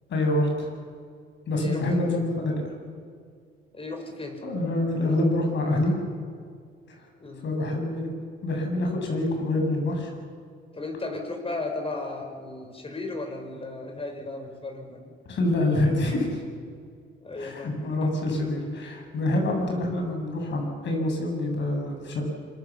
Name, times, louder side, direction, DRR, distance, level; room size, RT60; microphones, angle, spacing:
voice 1, 0.1-0.7 1.5-2.7 4.4-5.9 6.9-7.0 7.4-8.1 8.4-10.1 15.3-16.4 17.4-22.2, left 1 dB, 65° left, 2 dB, 7.4 m, -26 dB
voice 2, 1.6-2.2 3.7-4.5 7.2-7.4 10.7-15.2 17.2-17.8, left 2 dB, 30° left, 4 dB, 5.7 m, -35 dB
26.0 x 22.5 x 7.4 m, 2.2 s
cardioid pair, 90°, 20 cm